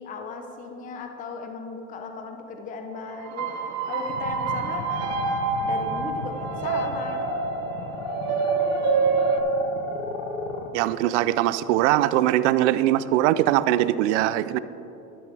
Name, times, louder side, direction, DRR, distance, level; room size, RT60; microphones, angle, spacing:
voice 1, 0.0-5.1 5.6-7.2, left 4 dB, 20° left, 4 dB, 0.7 m, -36 dB
sound 1, 3.2-9.4, right 5 dB, 35° right, 0.9 m, -27 dB
sound 2, 4.1-10.7, left 3 dB, 70° left, 1.4 m, -34 dB
voice 2, 10.7-14.6, right 14 dB, 55° right, 16 dB, 0.5 m, -21 dB
12.0 x 10.0 x 3.4 m, 2.9 s
supercardioid pair, 130°, 44 cm